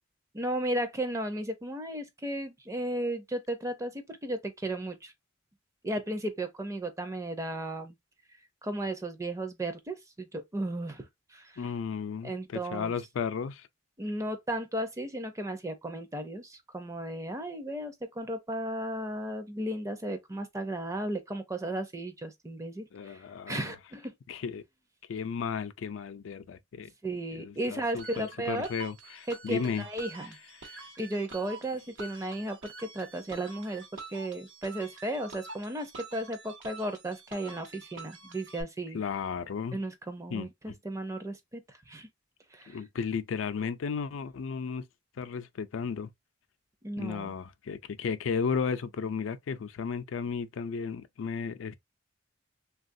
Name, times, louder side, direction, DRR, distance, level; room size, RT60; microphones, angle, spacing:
voice 1, 0.3-5.1 5.8-8.0 8.6-11.6 12.2-12.9 14.0-23.2 23.5-24.1 27.0-28.7 29.3-30.4 31.0-39.0 39.7-42.1 42.5-42.8 46.8-47.3, right 1 dB, 15° right, 0.5 m, -35 dB
voice 2, 11.6-13.7 22.9-23.7 24.3-24.6 25.1-26.9 27.3-29.9 30.6-30.9 38.9-39.8 40.3-40.8 42.7-44.9 45.2-46.1 47.0-51.8, left 6 dB, 85° left, 0.4 m, -34 dB
sound 1, 28.0-38.6, right 4 dB, 75° right, 0.9 m, -47 dB
3.4 x 2.3 x 2.5 m
head